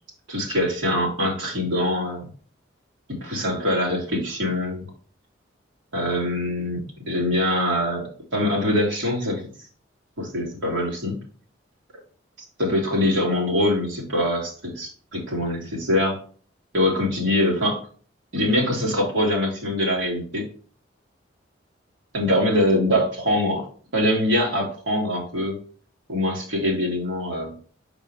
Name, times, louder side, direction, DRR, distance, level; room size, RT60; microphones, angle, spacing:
voice 1, 0.3-2.3 3.1-4.9 5.9-9.5 10.2-11.2 12.6-16.2 16.7-17.8 18.3-20.5 22.1-23.7 23.9-25.6 26.1-27.5, left 1 dB, 80° right, -2 dB, 2.5 m, -23 dB
5.6 x 5.1 x 3.2 m, 0.42 s
head